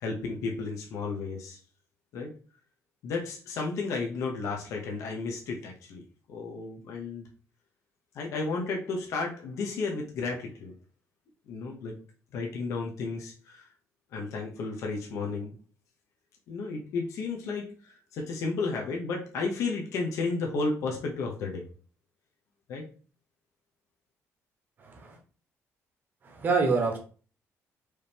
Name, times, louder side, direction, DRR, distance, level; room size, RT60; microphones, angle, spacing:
voice 1, 0.0-1.6 2.1-2.3 3.0-6.0 6.3-7.3 8.1-10.7 11.5-11.9 12.3-13.7 14.1-15.5 16.5-21.6 22.7-22.8, left 4 dB, 75° left, 0 dB, 0.9 m, -33 dB
voice 2, 24.8-25.2 26.2-27.0, right 4 dB, 40° right, 3 dB, 1.0 m, -26 dB
4.8 x 2.9 x 3.3 m, 0.39 s
cardioid pair, 160°, 5 cm